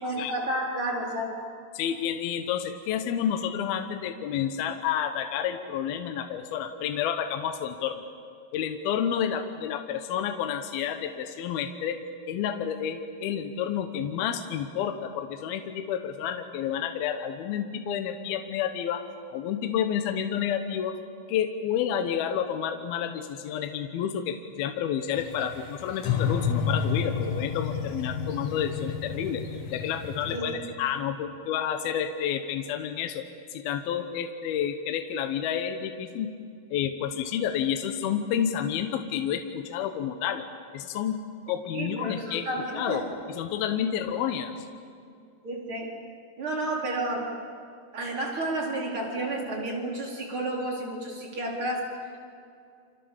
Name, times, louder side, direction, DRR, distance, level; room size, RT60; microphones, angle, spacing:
voice 1, 0.0-1.4 30.3-30.6 41.7-43.1 45.4-45.9 46.4-47.4 47.9-52.0, right 1 dB, 30° right, -1 dB, 4.8 m, -31 dB
voice 2, 1.7-8.0 8.5-12.0 12.3-21.0 21.3-29.4 29.7-33.3 33.5-36.3 36.7-40.4 40.7-41.2 41.5-42.5 42.7-43.0 43.3-44.5, left 9 dB, 75° left, 7 dB, 2.8 m, -30 dB
sound 1, 25.2-30.4, left 6 dB, 45° left, 2.9 m, -30 dB
29.0 x 27.0 x 7.3 m, 2.4 s
omnidirectional pair, 4.7 m